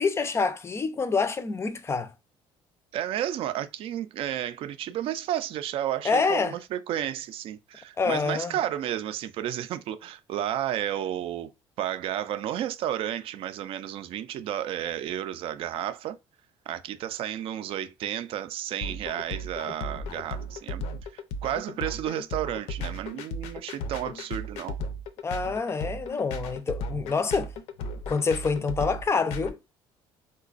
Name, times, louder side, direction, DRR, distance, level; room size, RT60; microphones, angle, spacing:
voice 1, 0.0-2.1 6.0-6.5 8.0-8.5 25.2-27.5 28.1-29.6, left 4 dB, 25° left, 0.4 m, -26 dB
voice 2, 2.9-11.5 11.8-16.2 16.7-20.9 21.1-24.8, right 11 dB, 60° right, 0.4 m, -32 dB
sound 1, 18.8-29.5, left 1 dB, 80° left, 0.5 m, -35 dB
3.9 x 2.2 x 2.4 m
cardioid pair, 105°, 11 cm